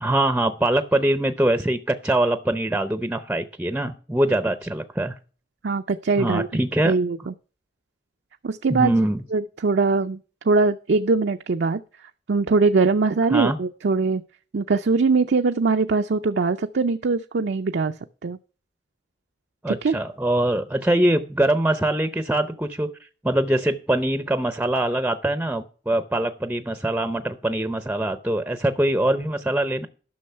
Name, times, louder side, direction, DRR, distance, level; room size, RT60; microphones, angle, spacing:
voice 1, 0.0-5.1 6.2-6.9 8.7-9.2 13.3-13.6 19.6-22.9 23.2-29.9, right 1 dB, 10° right, 11 dB, 0.6 m, -23 dB
voice 2, 5.6-7.3 8.4-8.9 9.3-10.2 10.4-11.8 12.3-14.2 14.5-18.0 18.2-18.4 19.7-20.0, right 4 dB, 65° right, 6 dB, 0.5 m, -22 dB
11.5 x 6.2 x 5.5 m, 0.38 s
head